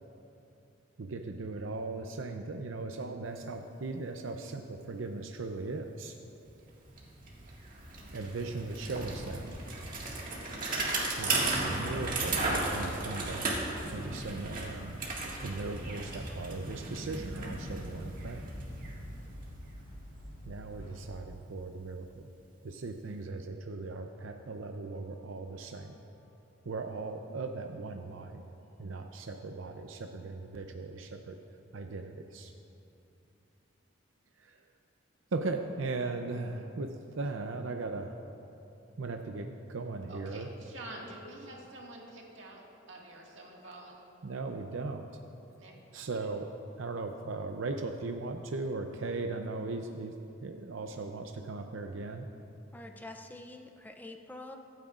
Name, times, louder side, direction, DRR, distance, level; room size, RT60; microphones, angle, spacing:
voice 1, 1.0-6.2 8.1-9.4 11.2-13.5 13.9-15.0 15.4-18.4 20.5-22.3 22.6-26.0 26.6-28.4 28.8-31.4 31.7-32.5 34.4-34.6 35.3-36.9 37.1-38.1 39.0-40.5 44.2-45.0 45.9-46.5 46.8-50.1 50.4-52.3, right 3 dB, 90° right, 4 dB, 0.6 m, -38 dB
Bicycle, 6.5-6.6 6.8-19.7, right 2 dB, 45° right, 1.9 m, -35 dB
sound 1, 14.4-21.1, equal, 70° left, 3.0 m, -48 dB
voice 2, 40.1-43.9 45.6-45.7, right 1 dB, 75° right, -2 dB, 1.9 m, -47 dB
voice 3, 52.7-54.6, left 2 dB, 10° left, 5 dB, 0.5 m, -46 dB
24.0 x 9.1 x 2.5 m, 2.8 s
head